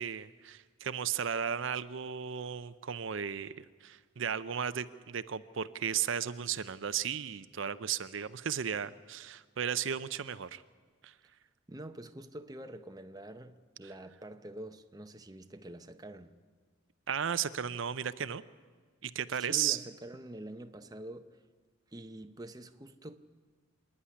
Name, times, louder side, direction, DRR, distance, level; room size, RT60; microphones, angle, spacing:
voice 1, 0.0-10.6 11.0-11.1 17.1-18.4 19.0-19.8, right 8 dB, 65° right, 0.6 m, -35 dB
voice 2, 11.7-16.4 19.4-21.4 21.9-23.2, right 1 dB, 20° right, 0.7 m, -46 dB
26.0 x 9.9 x 10.0 m
head